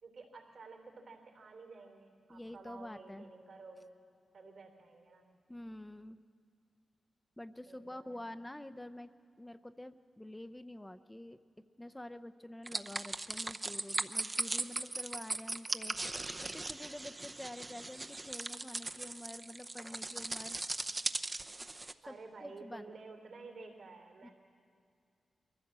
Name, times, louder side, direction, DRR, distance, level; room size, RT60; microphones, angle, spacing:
voice 1, 0.0-4.0 4.3-5.3 7.6-8.3 22.0-24.3, right 3 dB, 70° right, 3 dB, 3.3 m, -52 dB
voice 2, 2.3-3.3 5.5-6.2 7.4-9.1 9.4-16.0 16.4-20.6 22.1-22.9 24.2-24.3, left 1 dB, 15° left, 10 dB, 0.7 m, -48 dB
sound 1, 12.7-21.9, right 2 dB, 30° right, 0.8 m, -39 dB
22.5 x 15.5 x 7.5 m, 2.3 s
cardioid pair, 50°, 0 cm